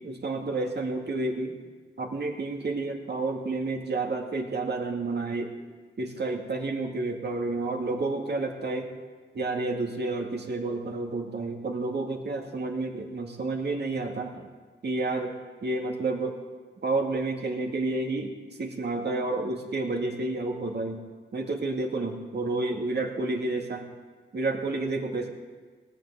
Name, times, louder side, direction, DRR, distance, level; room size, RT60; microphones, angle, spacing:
voice 1, 0.0-1.6 2.0-5.5 6.0-8.9 9.3-14.5 14.8-16.4 16.8-21.0 21.3-23.9 24.3-25.3, right 2 dB, 50° right, 2 dB, 2.2 m, -30 dB
18.0 x 7.8 x 7.0 m, 1.4 s
supercardioid pair, 50°, 21 cm